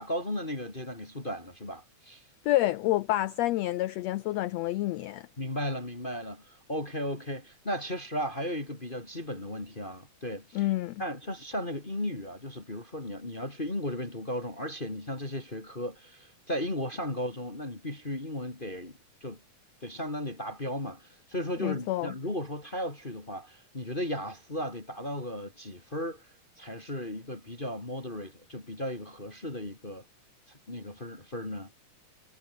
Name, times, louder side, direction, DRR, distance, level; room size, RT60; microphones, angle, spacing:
voice 1, 0.0-2.2 5.4-10.7 11.0-19.4 19.8-26.2 26.6-30.0 30.7-31.7, left 1 dB, 15° left, 2.4 m, -35 dB
voice 2, 2.4-5.3 10.5-11.0 21.6-22.1, left 16 dB, 80° left, 1.6 m, -28 dB
omnidirectional pair, 3.6 m